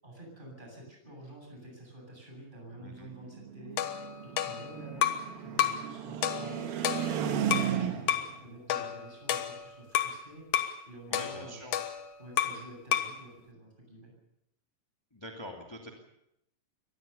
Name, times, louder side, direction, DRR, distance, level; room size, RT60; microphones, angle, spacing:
voice 1, 0.0-10.4 10.9-11.6 12.2-14.1, right 1 dB, 15° right, 1 dB, 8.1 m, -49 dB
voice 2, 2.8-3.1 11.1-11.8 15.1-15.9, equal, 10° left, 1 dB, 2.0 m, -44 dB
sound 1, 2.8-8.3, right 9 dB, 85° right, 3.5 m, -35 dB
sound 2, 3.8-5.3 5.6-5.9 6.2-7.7 8.1-8.3 8.7-10.2 10.5-10.8 11.1-12.7 12.9-13.2, left 10 dB, 65° left, 2.6 m, -31 dB
24.0 x 19.0 x 7.0 m, 0.80 s
omnidirectional pair, 4.0 m